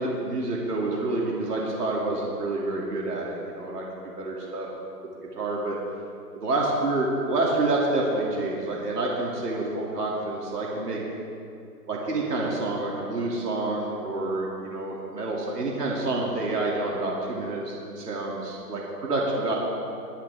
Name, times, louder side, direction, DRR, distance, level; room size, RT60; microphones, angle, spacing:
voice 1, 0.0-4.7 5.3-5.8 6.3-11.0 11.9-19.6, right 2 dB, 70° right, -3 dB, 2.8 m, -28 dB
21.5 x 10.5 x 3.6 m, 2.6 s
hypercardioid pair, 155°, 49 cm